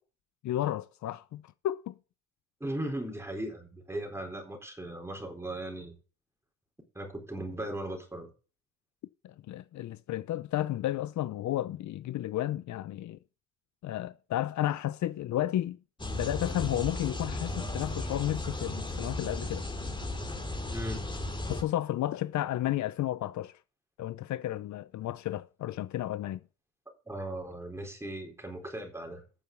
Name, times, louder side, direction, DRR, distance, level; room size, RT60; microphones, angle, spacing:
voice 1, 0.4-2.0 9.2-13.2 13.8-15.8 16.1-19.7 21.5-23.5 24.0-26.4, left 13 dB, 70° left, 0.6 m, -32 dB
voice 2, 2.6-5.9 6.9-8.3 20.7-21.1 27.1-29.2, right 1 dB, 10° right, 3.9 m, -37 dB
sound 1, 16.0-21.6, left 2 dB, 15° left, 2.5 m, -35 dB
8.6 x 6.9 x 6.7 m
cardioid pair, 90°, 30 cm